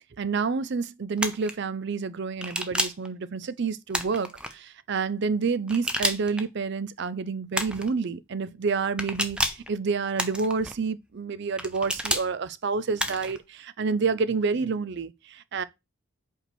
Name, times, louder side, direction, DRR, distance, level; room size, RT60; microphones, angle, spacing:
voice 1, 0.2-15.6, right 4 dB, 55° right, 0.5 m, -29 dB
sound 1, 1.2-1.5 2.4-3.1 3.9-4.5 5.7-6.4 7.5-7.9 9.0-9.7 10.2-10.7 11.6-12.3 13.0-13.4, right 1 dB, 5° right, 0.6 m, -29 dB
5.4 x 4.6 x 6.0 m
head